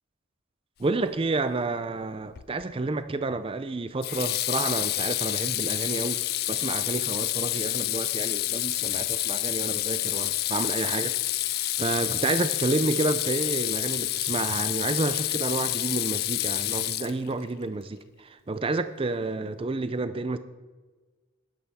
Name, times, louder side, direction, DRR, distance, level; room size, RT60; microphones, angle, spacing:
voice 1, 0.8-6.2 6.5-20.4, right 3 dB, 25° right, 12 dB, 0.4 m, -30 dB
Water tap faucet / Sink (filling or washing), 2.4-2.7 4.0-17.4, left 16 dB, 45° left, 0.3 m, -28 dB
12.5 x 9.7 x 4.1 m, 1.3 s
head